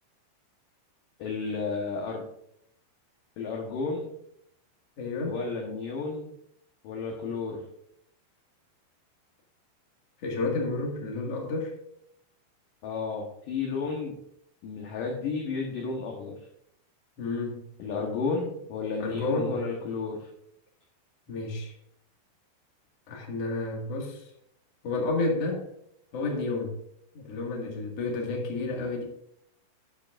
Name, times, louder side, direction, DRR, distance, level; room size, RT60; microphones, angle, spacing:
voice 1, 1.2-2.2 3.4-4.1 5.3-6.3 6.8-7.6 12.8-14.2 14.6-16.4 17.8-20.3, left 4 dB, 70° left, 0 dB, 2.1 m, -32 dB
voice 2, 5.0-5.4 10.2-11.7 17.2-17.7 19.0-19.6 21.3-21.8 23.1-24.3 24.8-25.7 26.1-26.8 27.1-29.0, left 3 dB, 50° left, -1 dB, 2.1 m, -31 dB
12.5 x 9.3 x 2.5 m, 0.72 s
omnidirectional pair, 5.6 m